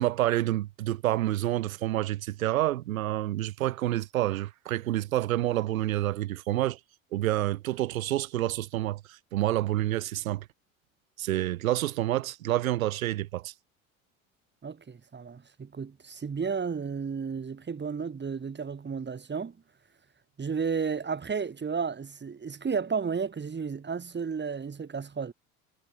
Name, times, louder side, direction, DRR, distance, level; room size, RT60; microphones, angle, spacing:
voice 1, 0.0-6.8 7.1-10.4 11.2-13.5, right 15 dB, 75° right, 1.1 m, -28 dB
voice 2, 14.6-19.6 20.4-25.3, right 5 dB, 25° right, 7.8 m, -33 dB
figure-of-eight pair, 70°, 42 cm